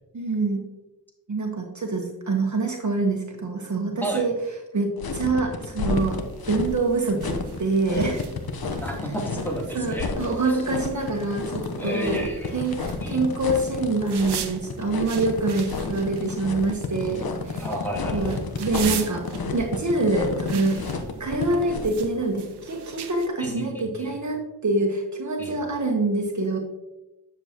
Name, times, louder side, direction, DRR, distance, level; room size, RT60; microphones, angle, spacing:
voice 1, 0.1-0.6 1.3-4.3 4.7-8.2 9.7-12.2 12.5-17.7 18.1-19.3 19.5-20.8 21.2-26.6, right 3 dB, 50° right, 2 dB, 1.2 m, -25 dB
sound 1, 5.0-22.1, left 4 dB, 65° left, 1.0 m, -31 dB
sound 2, 5.9-23.3, right 8 dB, 85° right, 0.8 m, -41 dB
voice 2, 8.8-10.1 10.4-10.6 11.8-12.6 13.0-13.2 17.6-18.4 23.4-24.1 25.4-25.6, right 1 dB, 5° left, -2 dB, 2.9 m, -32 dB
9.9 x 7.2 x 2.9 m, 0.97 s
cardioid pair, 70°, 39 cm